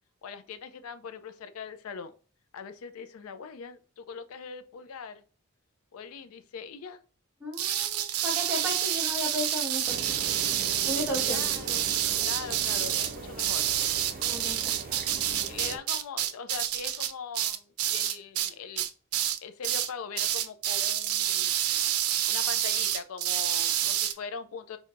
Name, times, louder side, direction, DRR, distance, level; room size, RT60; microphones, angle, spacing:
voice 1, 0.2-2.1 2.5-5.2 5.9-7.0 11.2-11.9 12.2-13.7 14.8-14.9 15.5-18.8 19.4-21.5 22.3-24.8, left 6 dB, 75° left, 0.4 m, -41 dB
voice 2, 7.4-10.0 10.9-11.4 14.2-15.2, equal, 10° right, 1.4 m, -35 dB
sound 1, 7.5-18.5 18.8-19.4 19.6-19.9 20.2-24.1, right 11 dB, 90° right, 0.5 m, -28 dB
sound 2, 9.9-15.8, right 3 dB, 40° right, 0.6 m, -41 dB
4.4 x 2.7 x 2.5 m
head